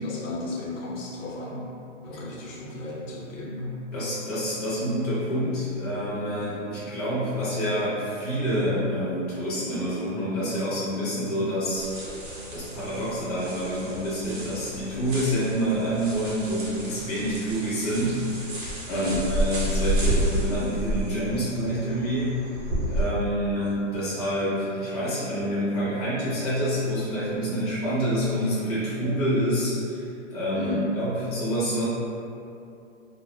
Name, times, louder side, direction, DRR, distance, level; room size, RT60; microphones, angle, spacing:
voice 1, 0.0-1.7 2.0-3.8 18.9-19.2 30.5-30.9, left 1 dB, 80° left, -4 dB, 0.7 m, -33 dB
voice 2, 3.9-11.9 12.5-18.2 18.9-22.3 22.9-31.8, equal, 30° left, -10 dB, 0.4 m, -27 dB
sound 1, 11.8-23.1, right 1 dB, 40° right, 0.6 m, -31 dB
2.0 x 2.0 x 3.0 m, 2.6 s
hypercardioid pair, 180°, 38 cm